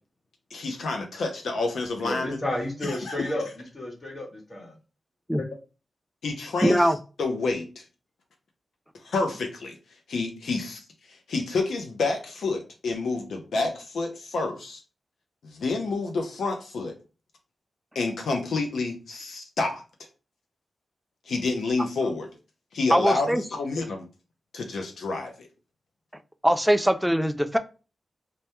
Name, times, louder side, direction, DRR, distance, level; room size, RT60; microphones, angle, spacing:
voice 1, 0.5-2.4 2.8-3.3 5.4-5.5 6.2-6.9 7.2-7.8 8.9-9.8 10.1-14.8 15.4-17.0 17.9-19.8 21.2-22.3 22.7-24.1 24.5-25.5, left 3 dB, 85° left, 0.5 m, -29 dB
voice 2, 2.0-3.5 3.7-4.7, left 1 dB, 45° left, 1.0 m, -31 dB
voice 3, 6.6-7.0 22.9-23.4 26.4-27.6, equal, 5° right, 0.3 m, -21 dB
2.1 x 2.1 x 2.8 m
cardioid pair, 45°, 0 cm